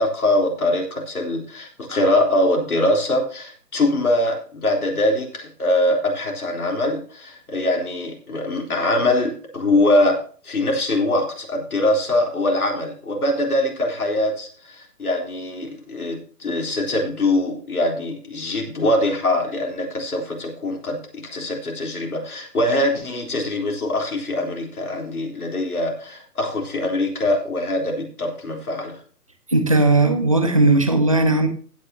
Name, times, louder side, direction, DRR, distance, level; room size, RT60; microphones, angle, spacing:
voice 1, 0.0-29.0, left 1 dB, 65° left, 1 dB, 3.8 m, -23 dB
voice 2, 29.5-31.5, right 2 dB, 20° right, 7 dB, 0.6 m, -17 dB
15.5 x 8.7 x 2.8 m, 0.42 s
figure-of-eight pair, 160°, 48 cm